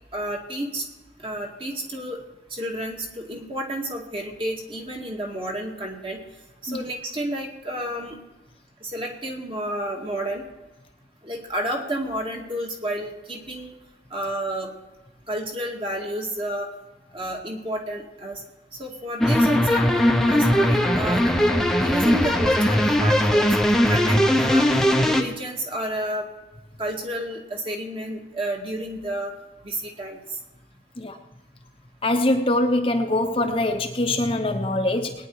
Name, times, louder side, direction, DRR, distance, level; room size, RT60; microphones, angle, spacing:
voice 1, 0.1-0.8 1.2-2.2 2.5-6.2 6.6-8.2 8.8-10.4 11.2-13.7 14.1-14.7 15.3-16.7 17.1-18.4 18.8-21.5 21.8-24.7 25.0-26.3 26.8-29.3 29.6-30.4, right 1 dB, 30° right, 1 dB, 2.1 m, -31 dB
sound 1, 19.2-25.2, equal, 5° left, 0.9 m, -19 dB
voice 2, 32.0-35.1, left 1 dB, 30° left, 4 dB, 1.0 m, -23 dB
20.5 x 9.8 x 4.8 m, 1.1 s
head